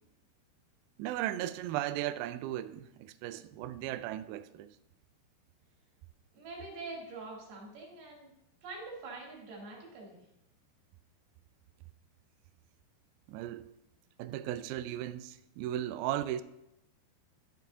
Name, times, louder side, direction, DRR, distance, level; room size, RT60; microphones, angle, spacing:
voice 1, 1.0-4.7 13.3-13.8 14.2-16.4, right 13 dB, 90° right, 2.1 m, -36 dB
voice 2, 6.3-8.3 8.6-10.2, right 3 dB, 70° right, 4.4 m, -45 dB
11.5 x 10.5 x 2.7 m
omnidirectional pair, 4.8 m